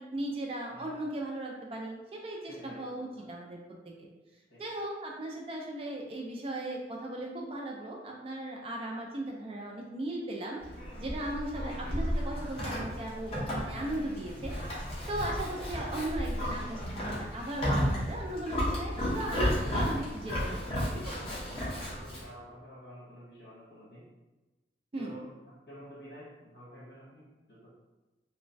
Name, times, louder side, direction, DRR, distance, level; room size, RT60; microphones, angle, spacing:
voice 1, 0.0-3.6 4.0-4.1 4.6-10.6 11.0-14.5 15.1-19.4 19.7-21.1 24.9-25.1, right 1 dB, 30° right, -1 dB, 0.3 m, -37 dB
voice 2, 0.7-1.1 2.5-3.3 4.5-4.6 10.9-11.0 15.0-15.3 21.1-24.0 25.0-27.7, equal, 65° left, -6 dB, 1.1 m, -51 dB
Livestock farm animals working animals, 10.6-22.3, equal, 30° left, 0.7 m, -33 dB
3.0 x 2.1 x 2.5 m, 1.1 s
head